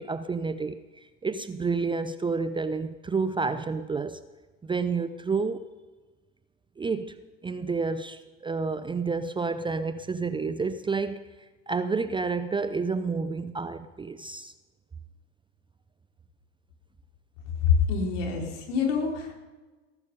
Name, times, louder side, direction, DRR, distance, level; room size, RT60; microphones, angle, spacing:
voice 1, 0.0-4.2 4.6-5.6 6.8-11.2 11.7-14.5, right 4 dB, 15° right, 12 dB, 0.6 m, -30 dB
voice 2, 17.7-19.3, left 6 dB, 70° left, 1 dB, 4.3 m, -25 dB
19.0 x 12.0 x 5.5 m, 1.2 s
hypercardioid pair, 95°, 38 cm